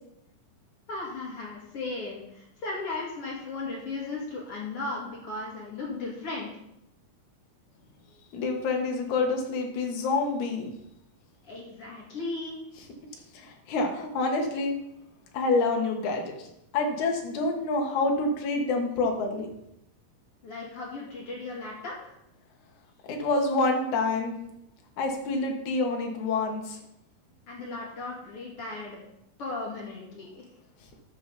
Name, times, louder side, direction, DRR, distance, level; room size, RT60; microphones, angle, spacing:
voice 1, 0.9-6.5 11.4-12.6 20.4-22.2 27.5-29.0 29.4-30.4, left 3 dB, 40° left, -4 dB, 3.1 m, -36 dB
voice 2, 8.3-10.7 13.3-14.8 15.3-16.5 16.7-19.5 23.1-24.3 25.0-26.8, left 3 dB, 65° left, 2 dB, 2.6 m, -27 dB
12.0 x 6.7 x 4.1 m, 0.81 s
omnidirectional pair, 4.3 m